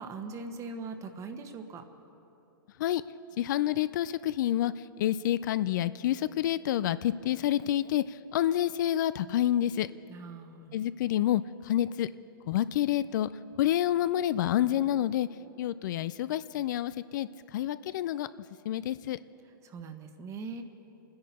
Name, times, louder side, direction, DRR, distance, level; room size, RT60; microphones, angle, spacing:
voice 1, 0.0-1.8 10.1-10.8 19.6-20.6, right 4 dB, 25° right, 7 dB, 1.2 m, -41 dB
voice 2, 3.4-9.9 10.7-12.1 12.5-13.3 13.6-15.3 15.6-18.3 18.6-19.2, left 12 dB, 60° left, 15 dB, 0.4 m, -28 dB
29.0 x 10.5 x 4.2 m, 2.9 s
hypercardioid pair, 120°, 12 cm